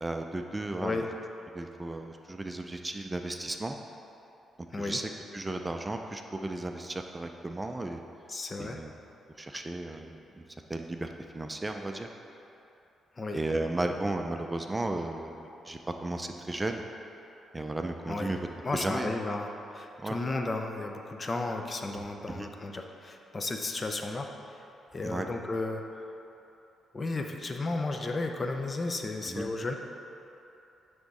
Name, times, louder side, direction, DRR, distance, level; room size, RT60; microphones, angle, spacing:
voice 1, 0.0-1.0 1.5-3.8 4.8-8.0 8.6-8.9 9.4-10.4 10.7-11.1 11.3-12.1 13.3-16.8 17.5-18.4 18.7-19.2 20.0-20.2 22.3-22.5 25.0-25.3 29.3-29.5, right 2 dB, 20° right, 4 dB, 0.4 m, -34 dB
voice 2, 8.3-8.8 13.2-13.4 18.1-18.3 18.6-24.6 24.9-26.0 26.9-29.7, left 2 dB, 35° left, 4 dB, 0.6 m, -34 dB
9.6 x 3.6 x 4.1 m, 2.8 s
cardioid pair, 70°, 0 cm